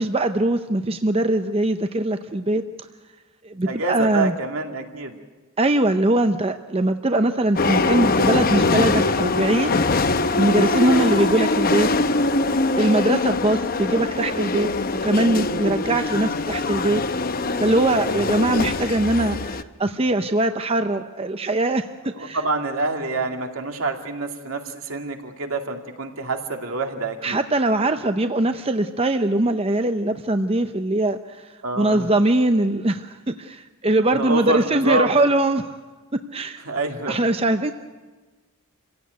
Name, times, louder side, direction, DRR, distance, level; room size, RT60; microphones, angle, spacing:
voice 1, 0.0-2.6 3.4-4.3 5.6-9.8 10.4-11.9 12.8-14.7 15.0-17.0 17.6-22.4 27.2-31.5 31.8-35.7 36.3-36.6 37.1-37.7, right 1 dB, 25° right, 8 dB, 0.7 m, -21 dB
voice 2, 3.6-5.2 10.8-11.1 22.1-27.4 31.6-32.1 34.1-35.1 36.7-37.2, right 3 dB, 75° right, 4 dB, 2.5 m, -27 dB
sound 1, 7.6-19.6, left 3 dB, 45° left, 0.8 m, -22 dB
27.5 x 16.5 x 9.3 m, 1.3 s
head